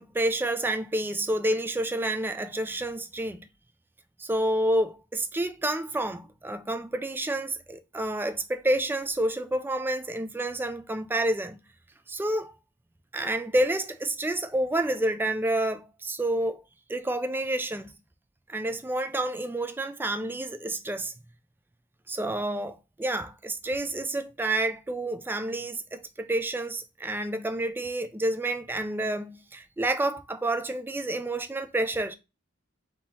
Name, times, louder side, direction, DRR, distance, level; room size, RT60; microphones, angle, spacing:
voice 1, 0.0-3.5 4.2-11.6 12.1-12.5 13.1-16.6 16.9-17.9 18.5-21.1 22.1-32.1, right 1 dB, 10° right, 0.3 m, -29 dB
3.6 x 2.8 x 4.1 m
head